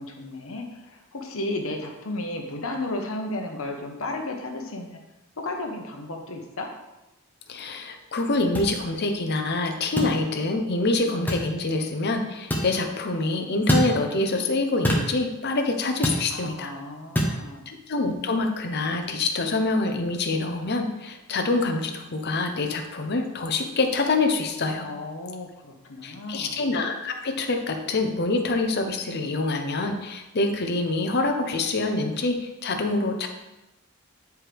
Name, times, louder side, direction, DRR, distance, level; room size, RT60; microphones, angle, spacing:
voice 1, 0.0-5.0 5.4-6.7 16.3-17.7 24.8-26.6, left 2 dB, 65° left, 3 dB, 1.1 m, -33 dB
voice 2, 7.5-16.7 17.7-24.9 26.0-33.3, left 2 dB, 50° left, 5 dB, 0.8 m, -26 dB
sound 1, 8.5-8.7 10.0-10.1 11.3-11.5 12.5-12.7 13.7-13.9 14.8-15.1 16.0-16.2 17.1-17.3, equal, 10° left, 1.0 m, -23 dB
9.5 x 4.7 x 3.4 m, 0.98 s
head